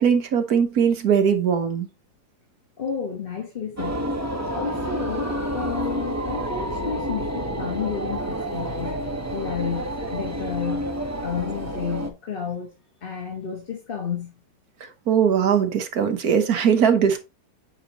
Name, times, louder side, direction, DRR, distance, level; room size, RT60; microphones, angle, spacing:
voice 1, 0.0-1.9 14.8-17.2, right 7 dB, 60° right, 1.4 m, -20 dB
voice 2, 2.8-4.0 4.5-9.0 9.3-10.9 11.2-12.7 13.0-14.3, left 7 dB, 35° left, 1.2 m, -31 dB
sound 1, 3.8-12.1, equal, 15° right, 0.6 m, -29 dB
9.0 x 4.8 x 2.9 m
omnidirectional pair, 2.0 m